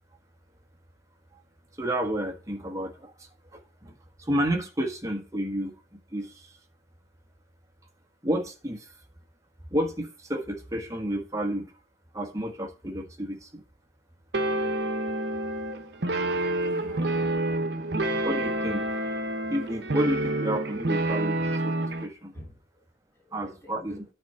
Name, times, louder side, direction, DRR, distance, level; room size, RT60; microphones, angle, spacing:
voice 1, 1.8-6.5 8.2-8.9 9.7-11.7 12.1-13.6 16.7-16.8 18.2-18.9 19.5-21.4 21.6-22.3 23.3-24.0, equal, 15° right, 3 dB, 1.4 m, -31 dB
sound 1, 14.3-22.1, right 1 dB, 60° right, 1.0 m, -28 dB
voice 2, 16.8-17.8 22.3-22.8 23.1-24.0, left 1 dB, 15° left, -3 dB, 3.8 m, -49 dB
10.5 x 4.5 x 5.8 m, 0.35 s
head